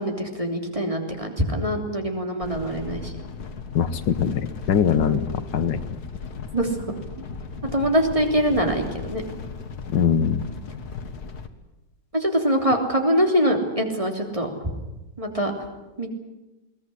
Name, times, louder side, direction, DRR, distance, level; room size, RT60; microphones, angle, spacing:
voice 1, 0.0-3.1 5.0-5.2 6.5-6.7 7.7-9.2 12.1-14.5 15.2-15.5 16.0-16.1, equal, 20° right, 2 dB, 3.3 m, -23 dB
sound 1, 2.4-11.5, left 4 dB, 60° left, 2.0 m, -36 dB
voice 2, 3.8-5.3 5.5-5.8 9.9-10.4, left 8 dB, 80° left, 12 dB, 1.8 m, -22 dB
22.0 x 17.5 x 9.9 m, 1.0 s
omnidirectional pair, 1.9 m